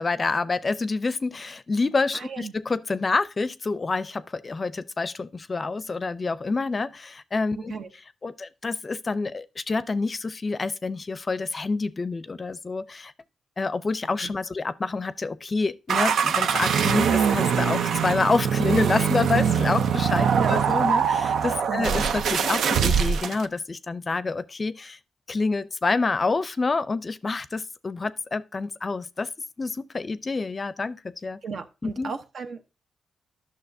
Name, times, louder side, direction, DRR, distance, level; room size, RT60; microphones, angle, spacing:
voice 1, 0.0-7.7 8.2-13.1 13.6-25.0 25.3-29.3 29.6-31.4 31.8-32.1, left 3 dB, 35° left, 0.5 m, -27 dB
voice 2, 2.1-2.5 7.6-7.9 14.2-14.3 20.3-20.7 21.7-22.0 31.4-32.6, right 5 dB, 70° right, 0.8 m, -35 dB
sound 1, 15.9-23.5, right 7 dB, 85° right, 0.5 m, -23 dB
11.5 x 6.2 x 2.6 m
cardioid pair, 80°, 0 cm